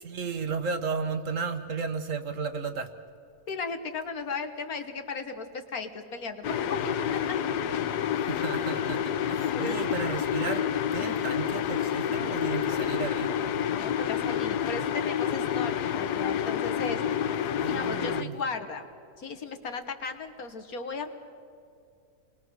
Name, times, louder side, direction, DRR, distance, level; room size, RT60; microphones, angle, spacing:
voice 1, 0.0-2.9 8.2-10.7 10.9-13.4 17.5-18.4, right 5 dB, 55° right, 8 dB, 1.3 m, -34 dB
voice 2, 3.5-7.4 9.5-9.8 13.7-17.0 17.7-18.8 19.2-21.1, left 4 dB, 65° left, 7 dB, 1.8 m, -36 dB
sound 1, 6.4-18.2, left 9 dB, 80° left, 1.3 m, -29 dB
28.5 x 21.0 x 6.3 m, 2.5 s
omnidirectional pair, 1.7 m